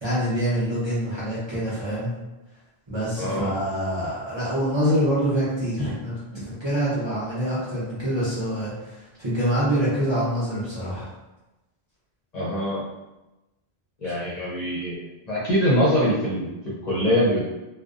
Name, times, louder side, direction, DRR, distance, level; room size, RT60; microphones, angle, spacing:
voice 1, 0.0-2.2 2.9-11.1 14.0-14.1, equal, 30° right, -10 dB, 0.7 m, -25 dB
voice 2, 3.2-3.5 6.3-6.5 12.3-12.8 14.0-15.0 15.3-17.4, equal, 45° left, -8 dB, 0.6 m, -23 dB
2.5 x 2.1 x 2.4 m, 1.0 s
omnidirectional pair, 1.1 m